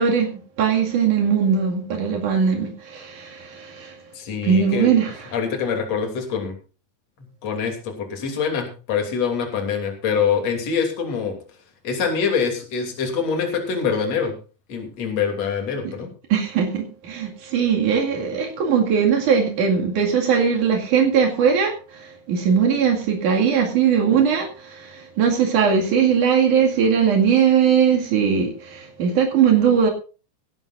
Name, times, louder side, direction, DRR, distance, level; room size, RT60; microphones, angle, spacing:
voice 1, 0.0-4.0 4.4-5.3 15.8-15.9 16.3-29.9, right 7 dB, 85° right, 3.7 m, -20 dB
voice 2, 4.1-4.9 5.3-6.5 7.2-11.4 11.8-14.4 14.7-16.1, left 6 dB, 55° left, 4.0 m, -24 dB
18.0 x 15.0 x 2.6 m
omnidirectional pair, 3.5 m